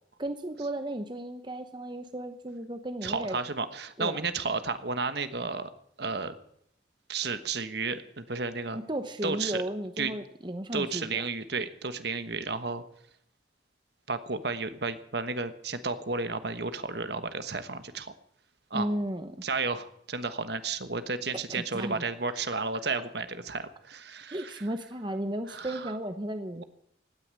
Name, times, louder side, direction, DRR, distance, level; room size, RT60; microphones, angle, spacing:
voice 1, 0.2-3.4 4.0-4.2 8.7-11.2 18.7-19.4 21.5-22.0 24.3-26.6, right 1 dB, 25° right, 8 dB, 0.9 m, -34 dB
voice 2, 3.0-5.7 6.0-6.4 7.1-8.8 9.2-9.6 10.0-10.1 10.7-12.8 14.1-18.1 18.7-18.9 19.4-24.6 25.5-25.9 26.6-26.7, right 4 dB, 60° right, 11 dB, 1.3 m, -32 dB
16.5 x 9.8 x 8.9 m, 0.70 s
head